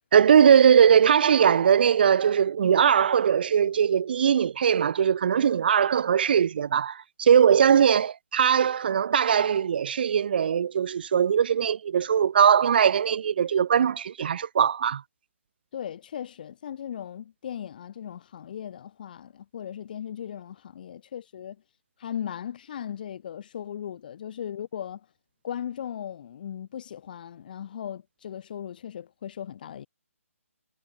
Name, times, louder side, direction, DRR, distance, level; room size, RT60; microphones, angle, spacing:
voice 1, 0.1-15.0, right 8 dB, 40° right, 0.8 m, -20 dB
voice 2, 15.7-21.6 22.0-25.1 25.4-29.9, left 9 dB, 35° left, 1.4 m, -37 dB
hypercardioid pair, 165°, 8 cm